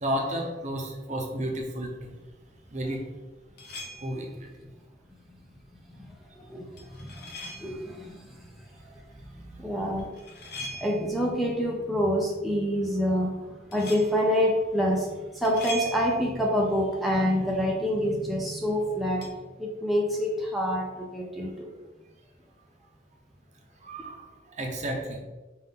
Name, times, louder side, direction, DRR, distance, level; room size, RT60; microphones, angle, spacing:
voice 1, 0.0-2.1 2.7-3.0 4.0-4.5 9.4-9.6 10.6-10.7 23.8-24.2 24.6-25.2, equal, 40° right, 1 dB, 0.8 m, -32 dB
sound 1, 3.6-4.3 6.8-7.9 10.0-11.2 13.7-14.2 15.4-16.5 19.2-19.3, equal, 60° left, 0.8 m, -40 dB
voice 2, 6.3-7.3 7.6-8.3 9.6-10.1 10.8-13.3 13.7-15.1 15.3-19.2 19.6-21.5, equal, ahead, -3 dB, 0.5 m, -26 dB
5.7 x 2.6 x 3.6 m, 1.2 s
head